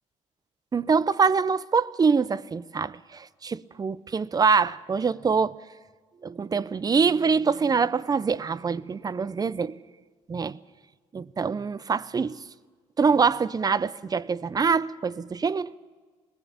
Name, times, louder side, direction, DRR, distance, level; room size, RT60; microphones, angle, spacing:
voice 1, 0.7-5.5 6.2-9.8 10.3-10.6 11.1-12.4 13.0-15.7, right 5 dB, 30° right, 0.6 m, -24 dB
21.5 x 17.5 x 7.2 m
cardioid pair, 95°, 14 cm